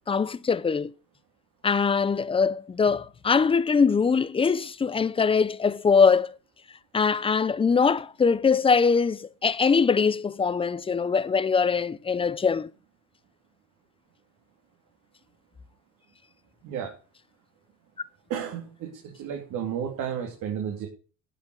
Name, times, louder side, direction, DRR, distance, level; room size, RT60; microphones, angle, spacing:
voice 1, 0.1-0.9 1.6-6.3 6.9-12.7, left 5 dB, 15° left, 0.7 m, -22 dB
voice 2, 16.6-16.9 18.3-20.9, right 8 dB, 65° right, 3.3 m, -32 dB
12.0 x 8.0 x 6.6 m
cardioid pair, 135°, 33 cm